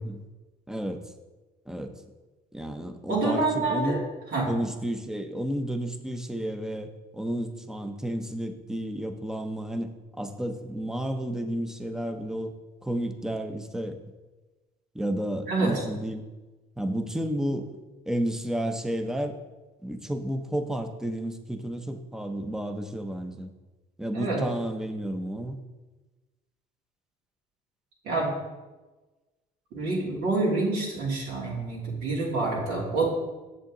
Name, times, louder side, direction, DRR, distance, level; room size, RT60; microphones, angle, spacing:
voice 1, 0.7-1.0 1.7-1.9 2.5-4.1 4.5-12.5 12.8-14.0 14.9-16.2 16.8-17.8 18.1-19.4 19.8-23.5 24.0-25.6, right 1 dB, 5° right, 6 dB, 0.7 m, -31 dB
voice 2, 3.1-4.0 4.3-4.5 15.5-15.7 24.1-24.4 28.0-28.3 29.7-33.1, right 3 dB, 75° right, -6 dB, 2.9 m, -27 dB
8.1 x 7.4 x 3.9 m, 1.2 s
cardioid pair, 110°, 17 cm